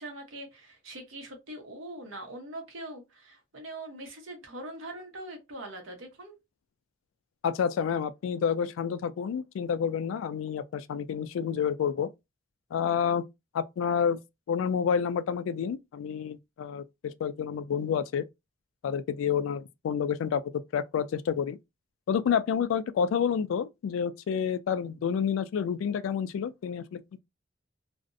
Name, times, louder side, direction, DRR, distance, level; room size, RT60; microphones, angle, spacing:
voice 1, 0.0-6.4, right 1 dB, 80° right, 0.9 m, -42 dB
voice 2, 7.4-12.1 12.7-13.3 13.5-14.2 14.5-18.2 18.8-21.6 22.1-27.2, left 7 dB, 85° left, 0.3 m, -29 dB
2.4 x 2.0 x 2.5 m
head